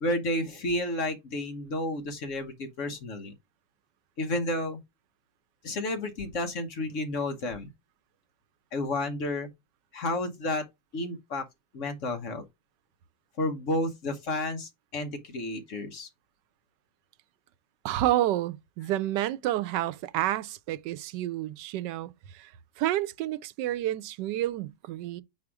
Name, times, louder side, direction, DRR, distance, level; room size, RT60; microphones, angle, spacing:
voice 1, 0.0-3.3 4.2-4.8 5.6-7.7 8.7-9.5 9.9-10.7 10.9-11.4 11.7-12.4 13.4-16.1, left 1 dB, 50° left, 1.1 m, -31 dB
voice 2, 17.8-22.5 22.8-25.2, right 14 dB, 85° right, 1.2 m, -29 dB
4.9 x 4.3 x 4.7 m
omnidirectional pair, 1.8 m